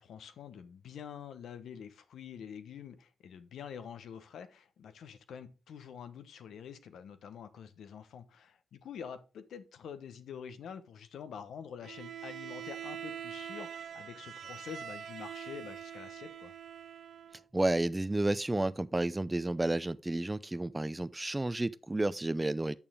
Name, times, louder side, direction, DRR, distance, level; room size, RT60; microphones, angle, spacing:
voice 1, 0.0-16.5, left 7 dB, 80° left, 1.1 m, -47 dB
Bowed string instrument, 11.8-17.4, right 9 dB, 70° right, 0.4 m, -44 dB
voice 2, 17.5-22.8, right 2 dB, 20° right, 0.6 m, -31 dB
8.8 x 6.7 x 3.6 m
cardioid pair, 55°, 0 cm